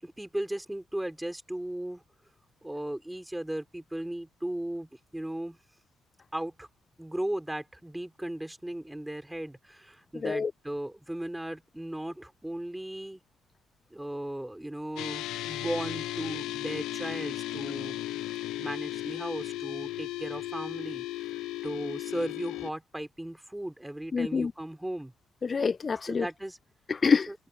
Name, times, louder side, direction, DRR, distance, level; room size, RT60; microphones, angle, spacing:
voice 1, 0.0-2.0 2.6-5.6 6.3-6.7 7.0-13.2 13.9-18.1 18.6-25.1 26.1-26.6 27.3-27.4, right 1 dB, 10° right, 4.9 m, -36 dB
voice 2, 10.1-10.5 24.1-24.5 25.4-26.3 26.9-27.3, left 5 dB, 40° left, 0.3 m, -26 dB
sound 1, 15.0-22.7, left 15 dB, 85° left, 1.1 m, -35 dB
supercardioid pair, 70°, 0 cm